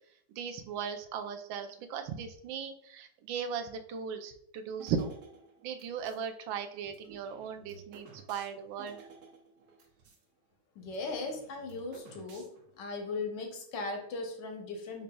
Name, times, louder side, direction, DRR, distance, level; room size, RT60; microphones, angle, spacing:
voice 1, 0.3-5.1 5.6-9.0, right 7 dB, 90° right, 7 dB, 1.4 m, -37 dB
sound 1, 4.8-6.2 6.8-10.2 10.5-10.6 10.8-12.8, right 5 dB, 60° right, 1.2 m, -55 dB
voice 2, 10.8-12.5 12.8-15.0, left 3 dB, 70° left, 3 dB, 1.5 m, -38 dB
5.3 x 4.1 x 2.2 m, 0.70 s
omnidirectional pair, 2.1 m